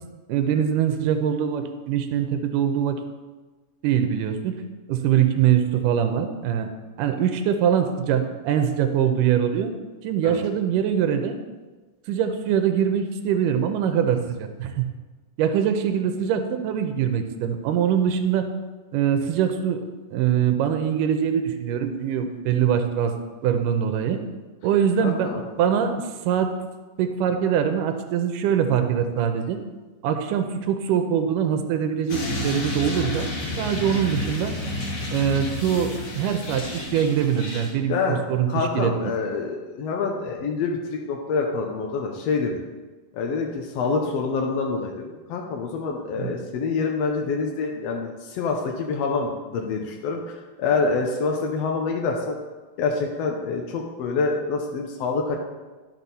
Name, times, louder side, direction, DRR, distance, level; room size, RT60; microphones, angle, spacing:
voice 1, 0.3-3.0 3.8-4.5 4.9-6.7 7.0-9.7 10.0-11.4 12.1-14.9 15.4-18.5 18.9-19.8 20.1-23.1 23.4-24.2 24.6-25.3 25.6-26.5 27.0-29.6 30.0-33.3 33.6-34.5 35.1-36.6 36.9-38.9 46.2-46.4, right 8 dB, 85° right, 7 dB, 2.3 m, -23 dB
voice 2, 25.0-25.4 37.9-38.2 38.5-42.6 43.1-52.3 52.8-55.4, left 4 dB, 70° left, 1 dB, 1.6 m, -26 dB
sound 1, 32.1-37.7, left 1 dB, 55° left, 2.7 m, -30 dB
12.0 x 6.1 x 4.1 m, 1.3 s
omnidirectional pair, 3.7 m